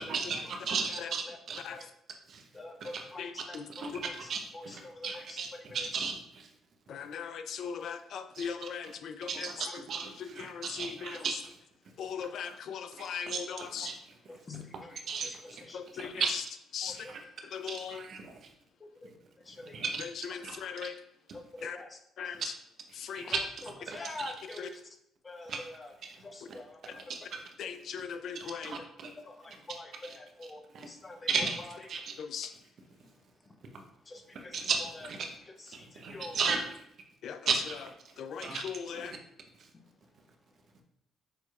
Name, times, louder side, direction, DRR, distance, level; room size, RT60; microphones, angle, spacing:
voice 1, 0.0-1.6 2.3-2.4 2.8-3.0 3.7-6.5 8.3-8.9 9.3-11.4 12.5-12.6 13.0-14.0 14.7-15.6 15.9-16.5 16.9-17.2 17.7-18.5 19.6-20.0 20.4-20.6 23.1-23.4 23.6-24.6 25.5-25.6 26.0-26.2 26.5-26.6 26.9-27.4 28.3-29.1 29.5-29.6 30.0-30.2 30.7-30.9 31.3-32.2 33.7-33.8 34.3-35.4 35.9-36.7 37.5-38.1 38.4-38.6 38.9-39.2, right 5 dB, 60° right, 3 dB, 0.8 m, -36 dB
voice 2, 2.5-3.9 4.5-5.6 14.5-14.9 15.2-15.3 15.7-15.8 16.8-17.1 19.0-19.1 19.5-19.7 21.3-22.0 23.2-23.3 23.9-24.8 25.2-25.9 26.2-27.0 29.2-30.6 30.9-31.2 34.1-34.5 36.1-36.4, left 2 dB, 30° left, 5 dB, 0.8 m, -45 dB
voice 3, 3.2-3.6 6.9-9.5 10.2-11.2 12.0-13.9 15.7-16.2 16.7-17.0 17.5-18.0 20.0-20.9 21.6-21.8 22.2-22.4 22.9-23.3 24.6-24.7 27.6-28.7 32.2-32.5 37.2-37.4 38.2-39.1, left 7 dB, 65° left, 9 dB, 0.3 m, -39 dB
6.7 x 3.0 x 2.4 m, 0.75 s
supercardioid pair, 60°, 0 cm